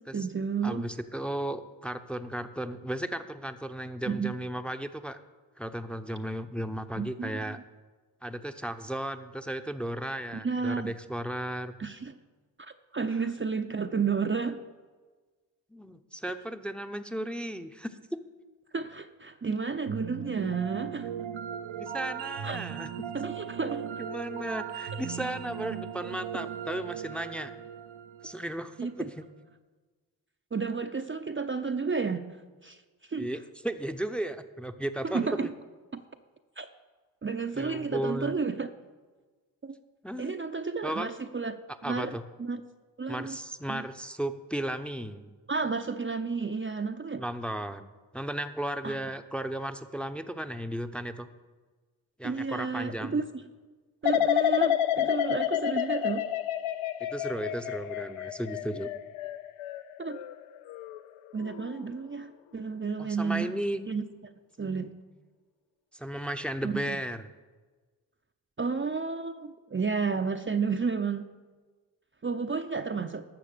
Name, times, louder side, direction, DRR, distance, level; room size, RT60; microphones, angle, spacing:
voice 1, 0.0-0.9 4.1-4.3 7.0-7.6 10.3-10.9 11.8-12.1 12.6-14.6 18.7-21.1 22.4-22.6 23.1-23.9 24.9-25.0 28.8-29.1 30.5-32.3 32.6-32.8 33.1-33.3 35.0-35.5 35.9-36.0 36.6-36.7 37.2-38.7 39.6-39.8 40.2-41.6 41.8-42.6 43.0-43.4 43.7-43.8 45.5-47.2 48.8-49.0 52.2-53.2 54.0-56.3 60.0-60.2 61.3-63.5 63.9-64.1 64.6-64.9 66.6-67.0 68.6-71.2 72.2-73.3, right 5 dB, 25° right, 7 dB, 0.7 m, -31 dB
voice 2, 0.6-5.2 5.6-7.6 8.2-11.8 13.1-13.2 15.7-18.0 21.8-22.9 24.0-27.5 28.2-29.2 33.2-35.5 37.6-38.3 40.0-40.3 40.8-41.1 41.8-42.2 43.1-45.3 47.2-47.9 48.1-51.3 52.2-53.2 57.0-58.9 63.0-63.8 65.9-67.3, right 1 dB, ahead, 9 dB, 0.8 m, -35 dB
sound 1, 19.9-29.0, right 8 dB, 70° right, 0.9 m, -38 dB
sound 2, 54.0-61.0 61.4-61.8, left 12 dB, 85° left, 0.6 m, -29 dB
12.0 x 6.9 x 6.8 m, 1.4 s
supercardioid pair, 45°, 48 cm